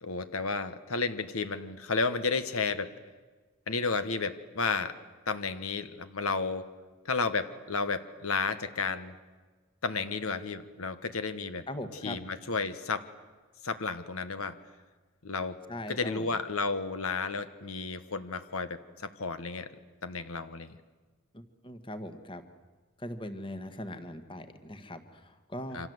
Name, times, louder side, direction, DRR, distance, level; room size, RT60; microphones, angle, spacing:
voice 1, 0.0-2.9 3.7-4.9 5.3-6.7 7.0-9.1 9.8-11.7 12.0-13.1 13.6-14.6 15.2-15.6 15.9-19.7 20.0-20.7 25.7-25.9, left 4 dB, 70° left, 11 dB, 1.3 m, -32 dB
voice 2, 11.7-12.2 15.7-16.3 21.3-22.4 23.0-25.9, left 1 dB, 25° left, 9 dB, 1.6 m, -40 dB
27.5 x 25.5 x 8.0 m, 1.3 s
head